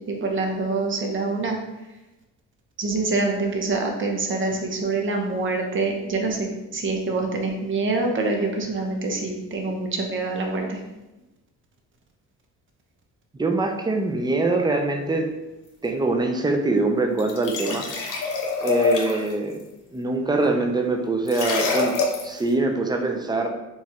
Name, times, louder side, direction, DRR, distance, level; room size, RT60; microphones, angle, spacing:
voice 1, 0.1-1.6 2.8-10.8, right 3 dB, 40° right, 2 dB, 0.8 m, -25 dB
voice 2, 13.4-15.3 15.8-17.9 18.6-19.6 19.9-22.0 22.2-23.5, right 2 dB, 15° right, 4 dB, 0.5 m, -23 dB
sound 1, 17.2-19.3 21.3-22.4, left 4 dB, 85° left, 0.8 m, -25 dB
3.1 x 2.3 x 4.3 m, 1.0 s
cardioid pair, 90°, 30 cm